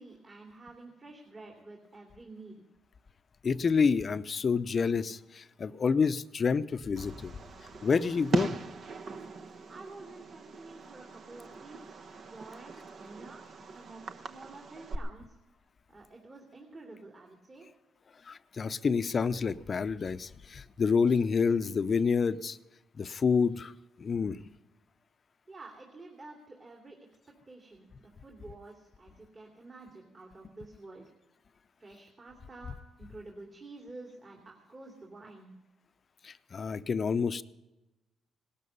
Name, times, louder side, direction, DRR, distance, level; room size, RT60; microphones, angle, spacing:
voice 1, 0.0-2.6 9.7-12.0 12.3-15.4 15.9-17.7 25.5-27.0 27.5-31.0 31.8-35.5, right 2 dB, 35° right, 0 dB, 2.8 m, -50 dB
voice 2, 3.4-7.3 7.8-8.6 18.3-22.6 23.0-23.7 24.0-24.4 36.2-37.4, left 5 dB, 40° left, 14 dB, 0.6 m, -28 dB
Fireworks, 7.0-15.0, right 4 dB, 55° right, 1.0 m, -39 dB
18.5 x 12.5 x 5.5 m, 1.0 s
cardioid pair, 90°, 0 cm